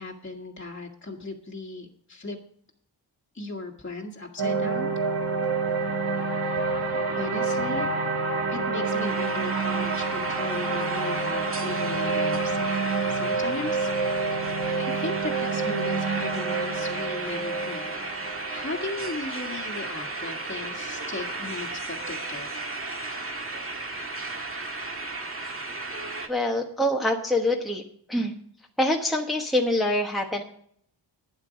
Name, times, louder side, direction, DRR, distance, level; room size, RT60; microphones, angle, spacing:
voice 1, 0.0-2.4 3.3-4.9 7.1-7.9 8.5-13.9 14.8-18.0 18.5-22.5, left 2 dB, 25° left, -2 dB, 1.7 m, -36 dB
sound 1, 4.4-20.6, right 4 dB, 55° right, 2.1 m, -28 dB
sound 2, 8.8-26.3, right 2 dB, 30° right, 1.7 m, -34 dB
voice 2, 26.3-27.8 28.1-28.4 28.8-30.4, left 1 dB, ahead, 0 dB, 1.3 m, -25 dB
12.0 x 9.7 x 5.1 m, 0.64 s
wide cardioid pair, 95°, 43 cm